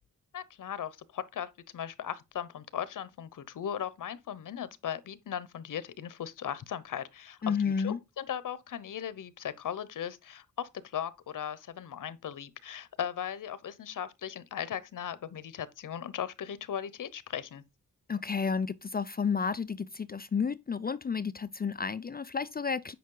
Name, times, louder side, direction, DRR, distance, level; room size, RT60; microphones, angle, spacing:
voice 1, 0.3-7.4 7.6-17.6, left 9 dB, 75° left, 0.9 m, -38 dB
voice 2, 7.4-8.0 18.1-22.9, left 6 dB, 30° left, 0.4 m, -31 dB
9.3 x 5.5 x 3.8 m
wide cardioid pair, 110°, 32 cm